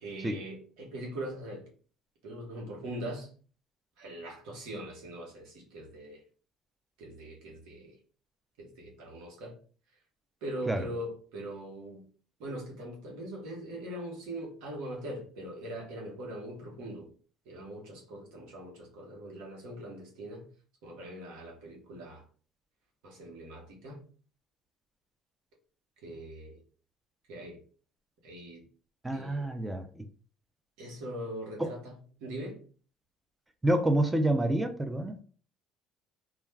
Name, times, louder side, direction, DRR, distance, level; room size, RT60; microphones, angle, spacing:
voice 1, 0.0-1.7 2.2-3.3 4.0-6.2 7.0-8.0 8.6-9.6 10.4-12.1 12.4-17.1 17.4-20.5 20.8-22.2 23.0-24.0 26.0-26.6 27.3-27.6 28.2-28.6 29.1-29.5 30.8-31.9 32.2-32.6, right 1 dB, 85° right, 1.0 m, -41 dB
voice 2, 29.0-30.0 31.6-31.7 33.6-35.2, right 1 dB, 10° right, 0.3 m, -28 dB
2.3 x 2.2 x 3.1 m
cardioid pair, 105°, 0 cm